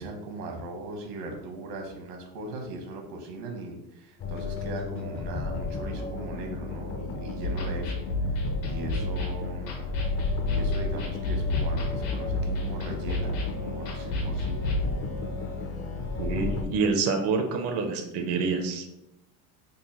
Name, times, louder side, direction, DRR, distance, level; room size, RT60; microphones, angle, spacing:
voice 1, 0.0-7.9 8.3-9.7 10.5-14.7, right 2 dB, 75° right, 3 dB, 1.1 m, -39 dB
sound 1, 4.2-16.6, left 4 dB, 30° left, 0.5 m, -33 dB
sound 2, 7.4-14.8, left 1 dB, 75° left, 1.2 m, -30 dB
voice 2, 16.2-18.9, right 4 dB, 35° right, 4 dB, 0.5 m, -27 dB
3.8 x 2.2 x 4.1 m, 0.89 s
supercardioid pair, 125°, 45 cm